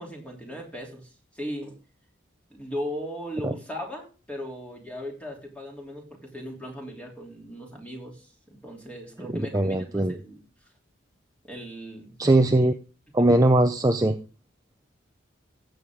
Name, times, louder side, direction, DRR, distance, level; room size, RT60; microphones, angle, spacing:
voice 1, 0.0-1.8 2.5-10.4 11.4-12.1, equal, 5° left, 0 dB, 3.0 m, -38 dB
voice 2, 9.3-10.2 12.2-12.7 13.1-14.2, right 1 dB, 20° right, 6 dB, 0.6 m, -20 dB
14.5 x 7.8 x 3.6 m, 0.36 s
head